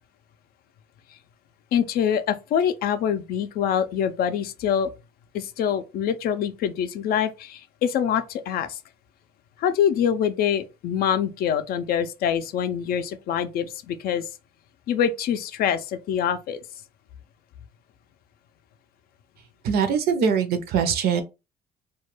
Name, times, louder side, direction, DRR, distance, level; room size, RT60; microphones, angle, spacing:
voice 1, 1.7-4.9 5.3-8.8 9.6-14.3 14.9-16.6, left 8 dB, 65° left, 0.4 m, -25 dB
voice 2, 19.6-21.2, right 6 dB, 65° right, 0.6 m, -22 dB
2.2 x 2.1 x 3.1 m
cardioid pair, 110°, 17 cm